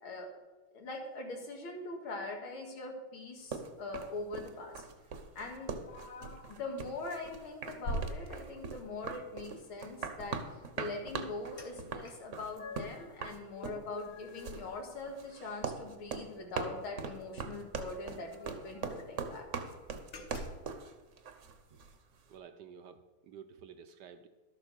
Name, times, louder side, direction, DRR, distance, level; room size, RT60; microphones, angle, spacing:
voice 1, 0.7-4.8 5.4-5.7 6.5-19.5, left 3 dB, 80° left, 1 dB, 2.7 m, -42 dB
sound 1, 3.5-22.0, right 5 dB, 50° right, 1.0 m, -41 dB
sound 2, 5.9-6.6 7.1-7.3 7.8-9.0 11.6-11.7 12.0-13.1 13.5-15.3 15.6-15.7 16.1-16.3 17.4-17.5 17.7-17.8 18.2-19.1 19.6-19.7 20.1-20.7, equal, 50° left, 1.5 m, -44 dB
voice 2, 22.3-24.3, right 7 dB, 70° right, 9 dB, 1.1 m, -51 dB
12.0 x 7.5 x 6.3 m, 1.3 s
omnidirectional pair, 2.3 m